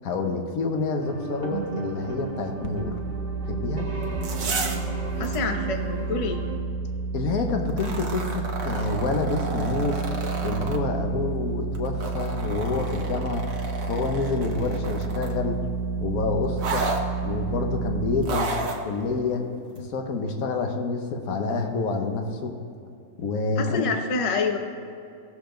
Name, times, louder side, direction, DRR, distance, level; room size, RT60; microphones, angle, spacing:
voice 1, 0.0-2.9 3.5-3.8 7.1-10.0 10.4-15.6 16.0-16.8 17.2-18.5 18.8-19.4 19.7-22.5 23.2-23.9, left 3 dB, 60° left, 4 dB, 1.4 m, -28 dB
sound 1, 1.0-6.6, right 4 dB, 35° right, 1.6 m, -35 dB
sound 2, 2.7-18.3, right 4 dB, 75° right, 1.3 m, -30 dB
sound 3, 4.0-4.9 5.2-5.4 7.7-10.8 11.7-15.4 16.6-17.0 18.2-18.8 19.8-19.9, right 3 dB, 55° right, 1.4 m, -32 dB
voice 2, 5.2-6.4 23.6-24.6, left 4 dB, 35° left, 5 dB, 0.5 m, -27 dB
16.0 x 7.0 x 3.9 m, 2.5 s
omnidirectional pair, 1.8 m